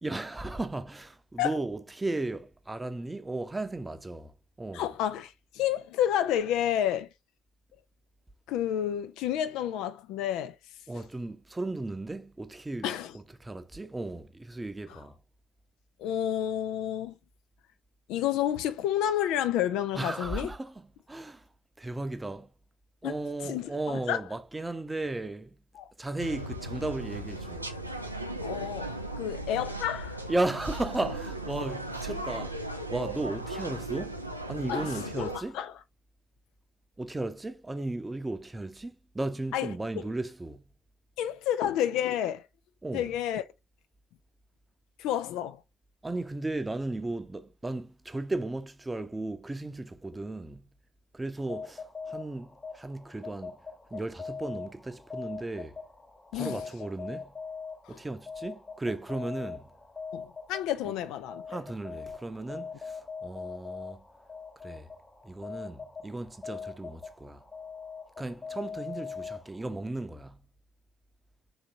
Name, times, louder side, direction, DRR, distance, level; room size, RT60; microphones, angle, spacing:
voice 1, 0.0-4.9 10.9-15.2 19.9-21.5 21.8-22.5 23.0-25.6 26.0-27.7 30.3-35.6 37.0-40.6 42.8-43.1 46.0-50.6 51.1-53.6 53.9-55.8 56.3-57.3 57.9-59.7 60.8-61.0 61.5-64.0 64.6-64.9 65.2-67.4 68.2-70.4, right 2 dB, 15° right, 0.7 m, -35 dB
voice 2, 4.7-7.1 8.5-10.5 12.8-13.1 16.0-17.1 18.1-20.5 23.0-23.1 23.4-24.2 25.8-25.9 28.4-30.2 34.7-35.7 39.5-39.7 41.2-42.4 42.9-43.4 45.0-45.6 56.3-56.6 57.9-58.0 60.1-61.6, left 11 dB, 65° left, 0.3 m, -30 dB
sound 1, 26.2-35.4, right 1 dB, 90° right, 0.3 m, -37 dB
sound 2, 51.4-69.9, left 5 dB, 25° left, 1.2 m, -42 dB
4.0 x 3.3 x 2.7 m
figure-of-eight pair, 45°, 0 cm